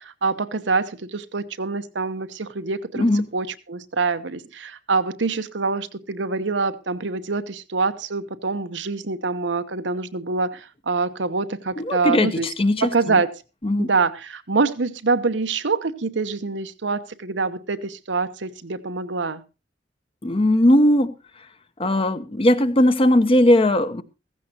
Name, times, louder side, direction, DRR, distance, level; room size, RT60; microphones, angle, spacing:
voice 1, 0.0-3.0 3.3-12.5 12.8-13.3 13.8-19.4, right 4 dB, 85° right, 1.0 m, -25 dB
voice 2, 3.0-3.3 11.8-13.2 13.6-13.9 20.2-21.1 21.8-24.0, left 1 dB, 30° left, 0.8 m, -18 dB
15.0 x 15.0 x 2.8 m
head